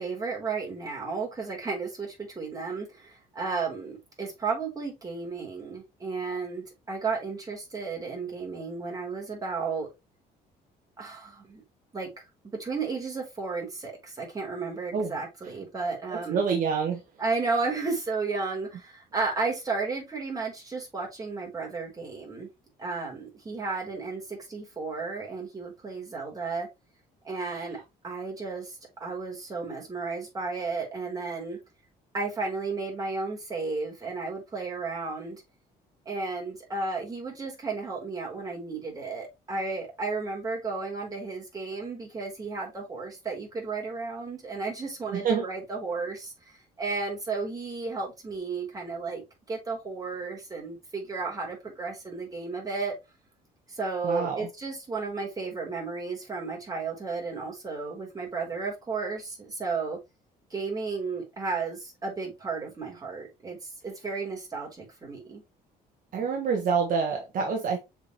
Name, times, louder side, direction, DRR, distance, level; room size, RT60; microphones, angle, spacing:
voice 1, 0.0-9.9 11.0-11.6 11.9-12.1 12.6-16.4 17.2-22.5 22.8-26.7 27.2-27.8 28.0-31.6 32.1-35.4 36.1-49.2 49.5-52.9 53.7-60.0 60.5-65.4, right 4 dB, 20° right, 3.7 m, -33 dB
voice 2, 16.1-17.0 27.5-27.7 45.1-45.4 54.0-54.5 66.1-67.8, right 5 dB, 55° right, 1.4 m, -27 dB
6.7 x 4.8 x 3.1 m
cardioid pair, 110°, 17 cm